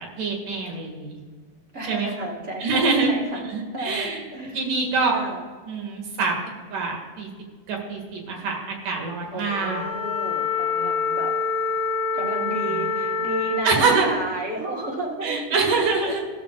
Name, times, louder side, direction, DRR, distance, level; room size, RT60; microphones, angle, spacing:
voice 1, 0.2-1.2 1.8-2.1 2.6-4.2 4.5-5.2 5.7-6.4 6.7-7.3 7.7-9.9 12.7-12.9 13.6-14.1 15.2-16.2, right 4 dB, 75° right, 0 dB, 3.7 m, -25 dB
voice 2, 1.7-3.4 3.7-4.6 5.1-5.4 9.3-11.3 12.1-15.5 16.0-16.2, right 2 dB, 45° right, -2 dB, 0.9 m, -32 dB
Wind instrument woodwind instrument, 9.5-13.8, left 5 dB, 50° left, 2.2 m, -26 dB
14.5 x 13.5 x 2.5 m, 1.5 s
omnidirectional pair, 3.7 m